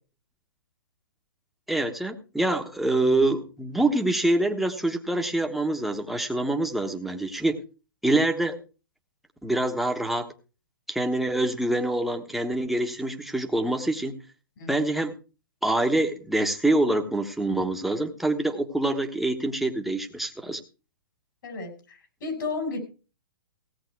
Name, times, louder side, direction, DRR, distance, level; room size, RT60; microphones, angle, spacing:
voice 1, 1.7-7.6 8.0-8.6 9.4-10.3 10.9-14.2 14.7-15.2 15.6-20.6, right 2 dB, ahead, 4 dB, 1.3 m, -25 dB
voice 2, 14.6-15.0 21.4-22.8, left 4 dB, 60° left, 5 dB, 5.8 m, -33 dB
17.0 x 8.0 x 4.7 m, 0.35 s
hypercardioid pair, 130°, 12 cm